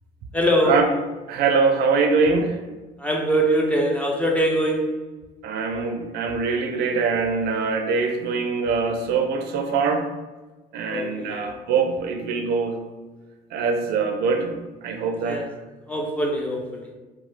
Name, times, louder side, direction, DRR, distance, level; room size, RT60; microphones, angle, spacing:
voice 1, 0.3-0.8 3.0-4.9 10.9-11.4 15.1-15.5 15.9-16.8, equal, 10° left, -1 dB, 0.5 m, -23 dB
voice 2, 1.3-2.6 5.4-10.1 10.7-12.8 13.5-14.5 14.8-15.5, right 4 dB, 70° right, 5 dB, 0.4 m, -23 dB
2.8 x 2.2 x 3.2 m, 1.2 s
cardioid pair, 110°, 17 cm